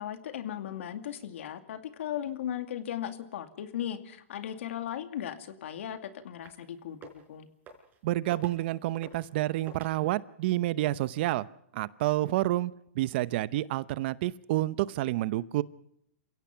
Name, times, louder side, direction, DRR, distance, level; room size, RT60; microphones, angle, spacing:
voice 1, 0.0-7.5, left 10 dB, 70° left, 8 dB, 2.4 m, -37 dB
sound 1, 6.4-6.7 6.9-7.3 7.7-8.0 8.3-8.6 9.0-9.3 9.7-9.9, right 5 dB, 25° right, 5.0 m, -49 dB
voice 2, 8.0-11.5 11.7-15.6, right 16 dB, 50° right, 18 dB, 0.8 m, -29 dB
28.5 x 16.5 x 5.8 m, 0.75 s
hypercardioid pair, 135°, 7 cm